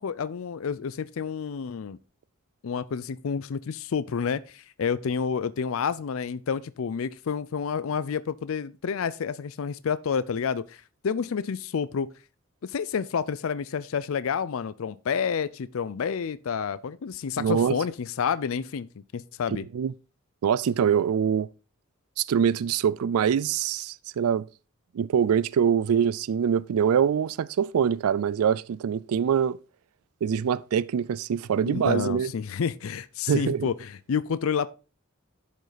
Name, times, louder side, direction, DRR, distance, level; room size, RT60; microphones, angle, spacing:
voice 1, 0.0-2.0 2.6-12.1 12.6-18.9 19.1-19.7 31.7-34.7, left 6 dB, 70° left, 0.4 m, -29 dB
voice 2, 17.4-17.8 19.7-19.9 20.4-21.5 22.2-24.4 24.9-29.6 30.2-32.3 33.3-33.7, right 8 dB, 85° right, 0.4 m, -24 dB
11.0 x 5.2 x 4.0 m
head